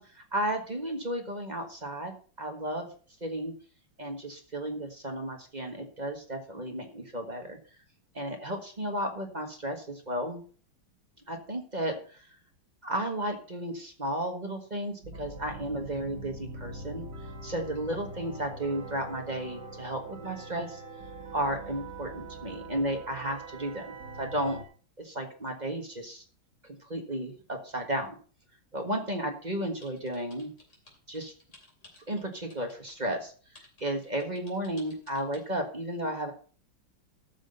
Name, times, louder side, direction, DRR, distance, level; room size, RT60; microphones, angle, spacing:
voice 1, 0.0-2.9 3.2-3.5 4.0-7.6 8.1-10.4 11.3-12.3 12.8-17.1 17.4-20.8 21.3-24.6 25.0-26.2 26.6-28.2 28.7-30.5 31.1-31.3 32.1-33.3 33.8-36.3, right 1 dB, 25° right, 3 dB, 1.4 m, -33 dB
sound 1, 15.0-24.6, right 2 dB, 55° right, 2.2 m, -43 dB
sound 2, 29.8-33.0 33.6-35.4, left 2 dB, 35° left, 3.4 m, -55 dB
13.5 x 6.3 x 5.3 m, 0.41 s
omnidirectional pair, 2.4 m